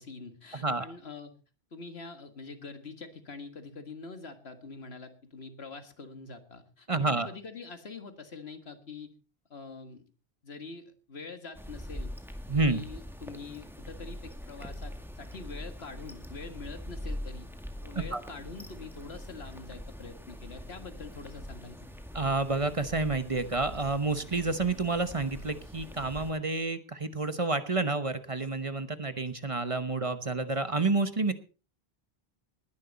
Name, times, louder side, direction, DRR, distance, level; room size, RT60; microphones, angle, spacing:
voice 1, 0.0-1.3 1.7-9.1 9.5-10.0 10.4-12.1 12.6-17.5 17.8-21.9, left 4 dB, 80° left, 8 dB, 2.0 m, -45 dB
voice 2, 6.9-7.3 12.5-12.8 17.9-18.2 22.1-31.3, right 3 dB, 35° right, 11 dB, 1.0 m, -29 dB
sound 1, 11.5-26.3, left 1 dB, ahead, 2.0 m, -43 dB
19.5 x 11.0 x 4.1 m, 0.35 s
omnidirectional pair, 1.0 m